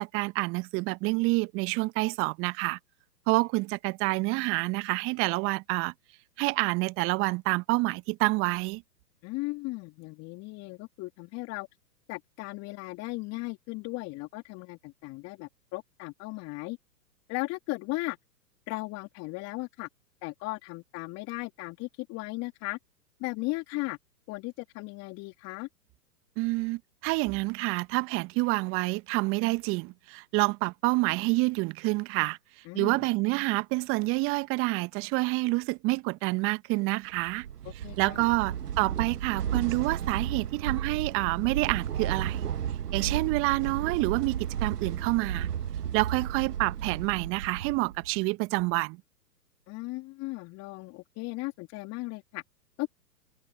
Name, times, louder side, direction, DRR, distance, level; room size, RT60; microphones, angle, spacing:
voice 1, 0.0-2.8 3.3-5.9 6.4-8.8 26.4-32.4 32.7-37.5 38.0-42.4 42.9-45.5 45.9-49.0, right 24 dB, 25° right, 1.1 m, -28 dB
voice 2, 9.2-11.7 12.1-16.8 17.3-18.2 18.7-19.9 20.2-22.8 23.2-24.0 24.3-25.7 32.6-33.0 37.8-38.3 49.7-52.4 52.8-52.9, left 23 dB, 30° left, 3.2 m, -36 dB
sound 1, 37.2-48.2, right 9 dB, 70° right, 1.3 m, -33 dB
figure-of-eight pair, 115°, 49 cm